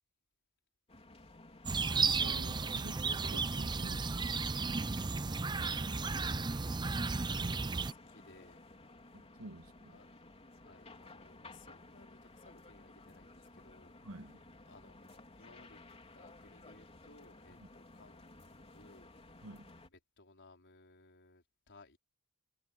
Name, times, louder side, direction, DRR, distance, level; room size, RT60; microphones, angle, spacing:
sound 1, 0.9-19.9, left 2 dB, 30° left, 3.8 m, -56 dB
sound 2, 1.7-7.9, right 4 dB, 20° right, 0.5 m, -34 dB
voice 1, 1.9-4.3 7.3-7.6 9.1-10.0 14.0-14.4 17.6-17.7 19.4-19.7, right 2 dB, 70° right, 1.7 m, -49 dB
voice 2, 5.6-8.6 9.0-9.2 9.9-13.9 14.7-15.8 16.1-19.4 19.9-22.0, left 2 dB, 55° left, 4.7 m, -62 dB
head